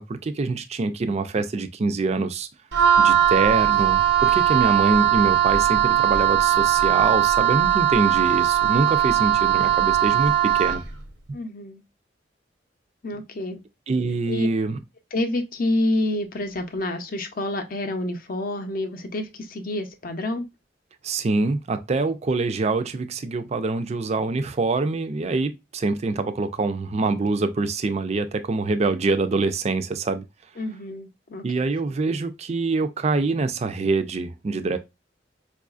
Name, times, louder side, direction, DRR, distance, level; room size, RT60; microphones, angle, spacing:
voice 1, 0.0-2.5 3.0-10.8 13.9-14.8 21.0-30.2 31.4-34.8, right 3 dB, 35° right, 0.4 m, -25 dB
Wind instrument woodwind instrument, 2.7-10.9, right 11 dB, 80° right, 0.8 m, -19 dB
voice 2, 11.3-11.8 13.0-13.6 14.3-14.5 15.1-20.4 30.6-31.5, left 1 dB, 50° left, 0.6 m, -28 dB
4.6 x 2.4 x 2.4 m
head